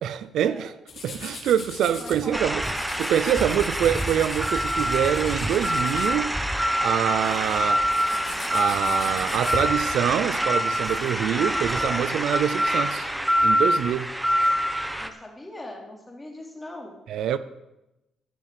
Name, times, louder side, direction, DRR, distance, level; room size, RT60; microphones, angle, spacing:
voice 1, 0.0-0.7 1.0-2.6 3.0-6.4 6.8-7.8 8.5-13.1 13.4-14.1 17.1-17.4, right 9 dB, 75° right, 0.5 m, -25 dB
sound 1, 0.9-2.3 2.6-6.6 6.9-11.1, left 4 dB, 60° left, 3.6 m, -40 dB
voice 2, 2.0-2.8 15.0-16.9, left 1 dB, 15° left, 3.1 m, -40 dB
sound 2, 2.3-15.1, equal, 5° right, 1.1 m, -25 dB
13.5 x 7.3 x 6.7 m
cardioid pair, 90°, 0 cm